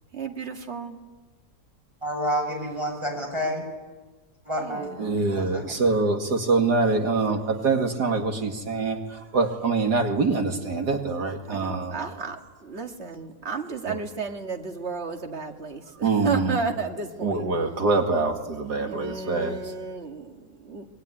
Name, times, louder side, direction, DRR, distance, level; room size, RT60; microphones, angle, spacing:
voice 1, 0.1-1.0 4.6-5.4 11.5-17.4 18.8-20.9, right 4 dB, 40° right, 3 dB, 2.3 m, -33 dB
voice 2, 2.0-3.6 4.4-5.6, equal, 15° right, 1 dB, 8.0 m, -29 dB
voice 3, 5.0-12.0 16.0-16.5 17.2-19.6, right 3 dB, 85° right, 3 dB, 2.8 m, -24 dB
25.0 x 22.0 x 10.0 m, 1.3 s
omnidirectional pair, 1.7 m